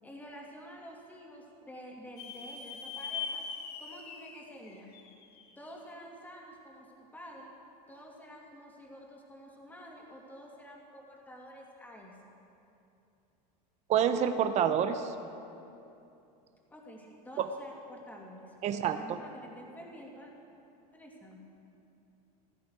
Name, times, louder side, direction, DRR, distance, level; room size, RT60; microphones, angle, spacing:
voice 1, 0.0-3.4 3.8-5.0 5.6-7.5 7.9-12.1 16.7-20.3 20.9-21.4, equal, 10° left, -1 dB, 2.4 m, -49 dB
sound 1, 2.2-5.7, left 6 dB, 50° left, 2.0 m, -41 dB
voice 2, 13.9-15.1 17.4-17.5 18.6-19.2, right 8 dB, 35° right, 9 dB, 0.7 m, -28 dB
16.0 x 13.0 x 4.8 m, 2.8 s
supercardioid pair, 130°, 20 cm